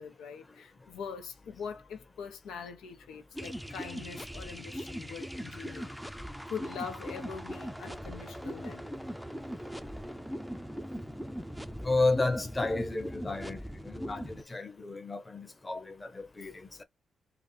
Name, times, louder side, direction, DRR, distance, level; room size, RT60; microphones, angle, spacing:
voice 1, 0.0-8.9, left 6 dB, 90° left, 0.8 m, -43 dB
sound 1, 3.3-14.4, equal, ahead, 0.5 m, -40 dB
voice 2, 11.8-13.6 13.9-16.8, left 2 dB, 25° left, 1.1 m, -32 dB
4.8 x 2.2 x 3.3 m
cardioid pair, 65°, 0 cm